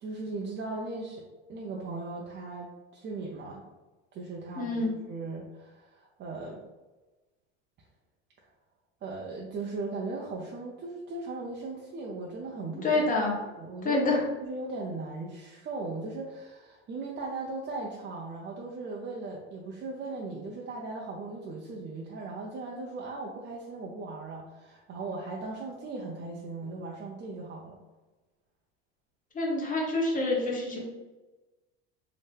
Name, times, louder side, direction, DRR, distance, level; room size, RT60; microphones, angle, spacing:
voice 1, 0.0-3.7 4.1-6.6 9.0-13.0 13.5-14.0 14.4-27.8, right 3 dB, 35° right, -2 dB, 0.5 m, -38 dB
voice 2, 4.6-4.9 12.8-13.3 13.8-14.2 29.3-30.9, left 2 dB, 25° left, -2 dB, 1.0 m, -27 dB
2.8 x 2.1 x 3.3 m, 1.1 s
hypercardioid pair, 90°, 34 cm